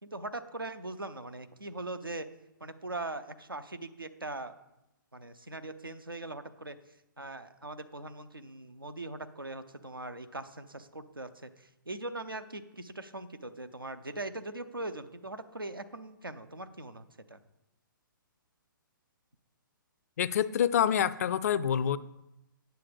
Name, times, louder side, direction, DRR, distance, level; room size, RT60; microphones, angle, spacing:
voice 1, 0.0-2.3 2.6-4.5 5.1-6.8 7.2-17.4, right 2 dB, 90° right, 9 dB, 0.8 m, -41 dB
voice 2, 20.2-22.0, left 9 dB, 45° left, 17 dB, 0.4 m, -27 dB
9.2 x 6.9 x 5.1 m, 0.90 s
figure-of-eight pair, 125°, 11 cm